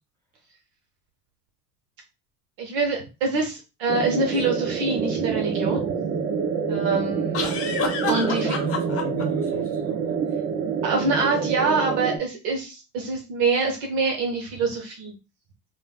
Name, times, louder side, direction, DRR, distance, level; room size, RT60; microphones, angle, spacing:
voice 1, 2.6-5.9 6.7-8.5 10.8-15.1, right 3 dB, 50° right, 1 dB, 0.7 m, -25 dB
sound 1, 3.9-12.2, right 6 dB, 25° right, 0.3 m, -27 dB
sound 2, 4.3-4.5 7.3-9.2, left 5 dB, 30° left, 0.7 m, -29 dB
voice 2, 8.2-10.2, equal, 5° left, -3 dB, 1.6 m, -37 dB
3.2 x 2.0 x 2.2 m, 0.30 s
hypercardioid pair, 80°, 46 cm